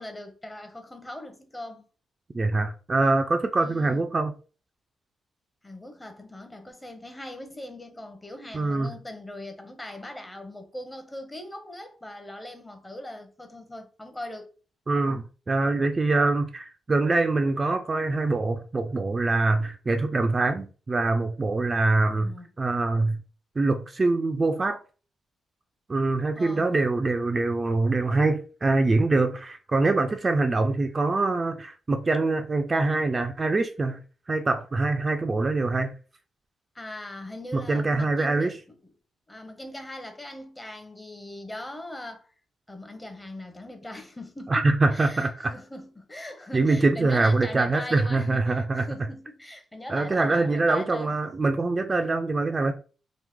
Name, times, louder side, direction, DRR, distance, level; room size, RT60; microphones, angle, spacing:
voice 1, 0.0-1.8 3.6-4.0 5.6-14.5 22.0-22.5 26.3-26.7 36.7-38.9 39.3-42.3 42.7-51.3, left 1 dB, 15° left, 0.7 m, -40 dB
voice 2, 2.3-4.3 8.5-8.9 14.9-23.2 23.6-24.8 25.9-34.0 34.3-35.9 37.5-38.5 44.5-45.5 46.5-48.9 49.9-52.7, right 3 dB, 30° right, 0.3 m, -24 dB
2.9 x 2.0 x 3.4 m
cardioid pair, 85°, 0 cm